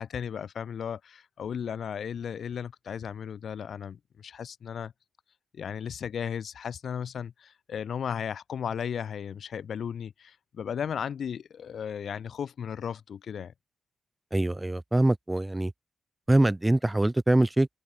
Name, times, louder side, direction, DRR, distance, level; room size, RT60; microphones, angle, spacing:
voice 1, 0.0-4.9 5.5-13.5, left 8 dB, 65° left, 5.5 m, -35 dB
voice 2, 14.3-15.7 16.3-17.7, right 1 dB, 15° right, 2.8 m, -23 dB
cardioid pair, 100°, 0 cm